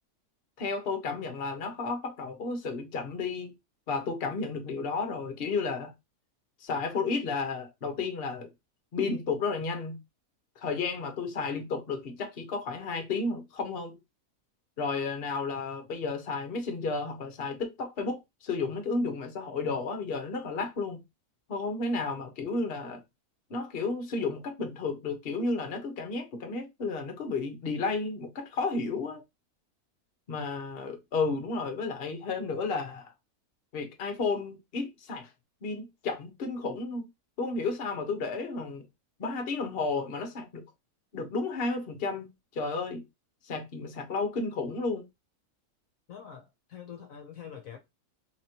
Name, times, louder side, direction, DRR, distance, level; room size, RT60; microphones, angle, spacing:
voice 1, 0.6-3.5 3.9-5.9 6.6-8.5 8.9-10.0 10.6-14.0 14.8-21.0 21.5-23.0 23.5-29.2 30.3-33.1 33.7-35.3 35.6-37.1 37.4-38.8 39.2-40.6 41.1-43.0 43.4-45.1, left 4 dB, 45° left, 1.1 m, -32 dB
voice 2, 46.1-47.8, left 8 dB, 65° left, 1.1 m, -45 dB
4.1 x 3.0 x 2.8 m
omnidirectional pair, 1.6 m